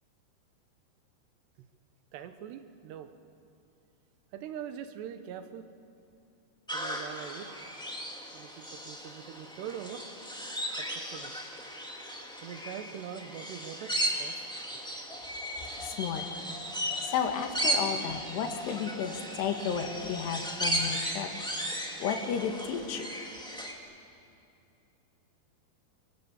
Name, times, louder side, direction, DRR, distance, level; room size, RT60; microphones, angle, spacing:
voice 1, 2.1-3.2 4.3-5.7 6.7-7.6 8.3-10.1 10.8-11.4 12.4-14.8, right 9 dB, 85° right, 9 dB, 3.3 m, -43 dB
sound 1, 6.7-23.7, equal, ahead, 1.2 m, -36 dB
voice 2, 15.8-16.3 17.0-21.3 22.0-23.1, left 7 dB, 80° left, 5 dB, 3.9 m, -33 dB
28.5 x 24.5 x 8.2 m, 2.6 s
omnidirectional pair, 4.7 m